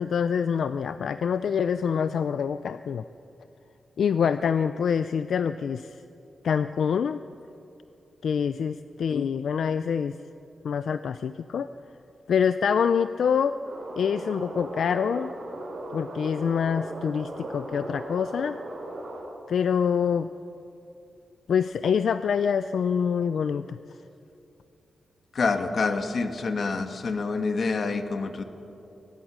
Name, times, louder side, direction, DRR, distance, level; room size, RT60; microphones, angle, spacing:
voice 1, 0.0-3.0 4.0-6.0 6.4-7.2 8.2-10.2 10.6-11.7 12.3-13.6 14.0-15.3 15.9-18.6 19.5-20.3 21.5-23.8, left 7 dB, 70° left, 12 dB, 0.4 m, -25 dB
sound 1, 13.6-19.2, right 1 dB, 55° right, 5.4 m, -38 dB
voice 2, 25.3-28.4, left 4 dB, 45° left, 7 dB, 1.4 m, -27 dB
23.0 x 19.5 x 6.3 m, 2.9 s
wide cardioid pair, 170°, 0 cm